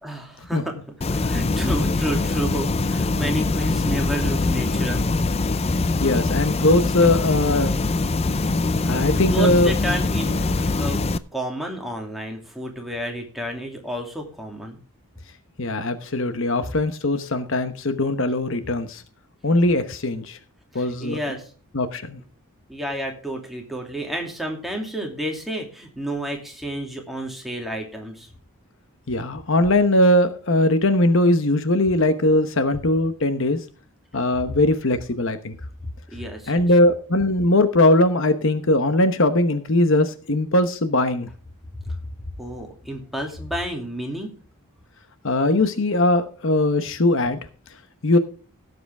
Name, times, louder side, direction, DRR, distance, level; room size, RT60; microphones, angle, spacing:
voice 1, 0.0-5.0 9.1-11.0 11.3-14.8 20.7-21.5 22.7-28.3 36.1-36.6 41.8-41.9 42.4-44.4, equal, ahead, 1 dB, 2.6 m, -31 dB
sound 1, 1.0-11.2, left 3 dB, 30° left, 0.5 m, -23 dB
voice 2, 6.0-7.7 8.8-9.7 15.6-19.0 19.4-20.4 20.7-21.2 21.7-22.2 29.1-33.6 34.1-35.6 36.5-41.3 45.2-47.4 48.0-48.2, left 1 dB, 60° left, 9 dB, 1.0 m, -20 dB
17.0 x 8.0 x 3.4 m, 0.38 s
head